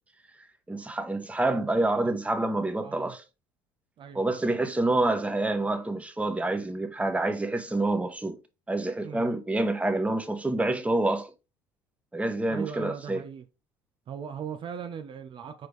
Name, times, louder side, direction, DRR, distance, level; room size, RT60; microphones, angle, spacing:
voice 1, 0.7-3.2 4.1-8.4 8.7-11.3 12.1-13.2, right 2 dB, 10° right, 1.2 m, -27 dB
voice 2, 2.8-3.2 4.0-4.4 9.0-9.3 12.5-13.5 14.1-15.7, right 7 dB, 45° right, 0.7 m, -39 dB
6.2 x 4.6 x 3.4 m
hypercardioid pair, 70°, 12 cm